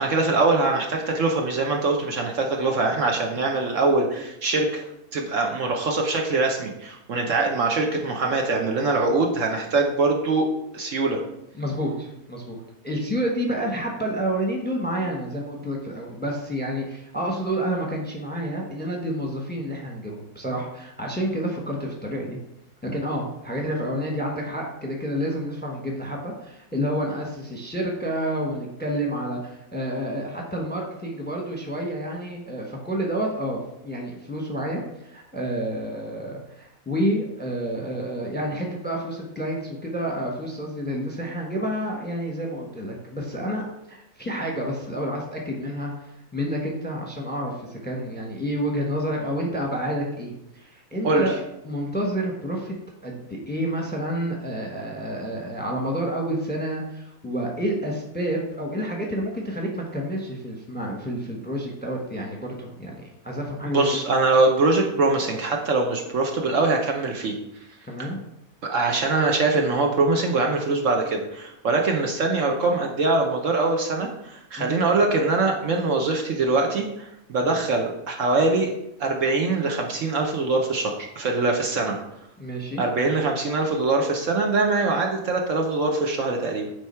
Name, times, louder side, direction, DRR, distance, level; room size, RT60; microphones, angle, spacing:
voice 1, 0.0-4.8 5.1-10.5 10.7-11.2 51.0-51.3 63.7-67.3 68.6-78.7 79.0-82.0 82.8-86.7, right 3 dB, 60° right, 2 dB, 1.1 m, -23 dB
voice 2, 11.6-12.6 12.8-22.4 22.8-51.4 51.6-52.7 53.0-64.0 67.9-68.2 74.6-74.7 82.4-82.8, equal, 10° left, 0 dB, 1.0 m, -29 dB
9.3 x 3.5 x 4.4 m, 0.82 s
omnidirectional pair, 1.6 m